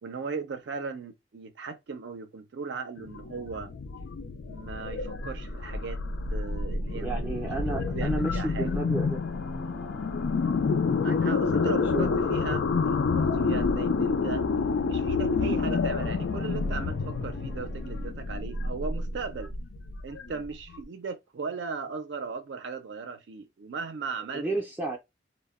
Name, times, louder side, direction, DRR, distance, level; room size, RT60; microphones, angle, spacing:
voice 1, 0.0-3.7 4.5-6.0 6.3-7.5 7.9-8.8 11.0-14.4 14.9-19.5 20.0-24.5, right 5 dB, 75° right, 0.4 m, -37 dB
sound 1, 3.0-20.8, left 4 dB, 85° left, 0.4 m, -28 dB
voice 2, 6.9-9.2 11.5-12.5 24.3-25.0, right 2 dB, 10° right, 0.4 m, -32 dB
sound 2, 7.2-18.1, left 1 dB, 55° left, 0.7 m, -46 dB
2.1 x 2.0 x 3.4 m
head